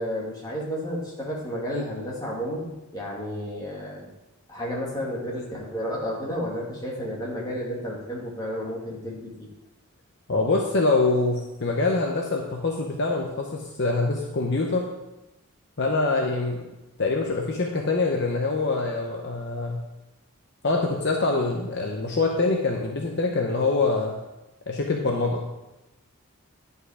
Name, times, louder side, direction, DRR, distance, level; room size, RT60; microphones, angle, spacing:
voice 1, 0.0-4.1 4.5-9.3, equal, 15° left, -4 dB, 2.1 m, -32 dB
voice 2, 10.3-14.9 15.8-16.6 17.0-19.8 20.6-24.2 24.7-25.4, left 3 dB, 50° left, 1 dB, 0.8 m, -24 dB
10.5 x 5.5 x 4.9 m, 0.99 s
head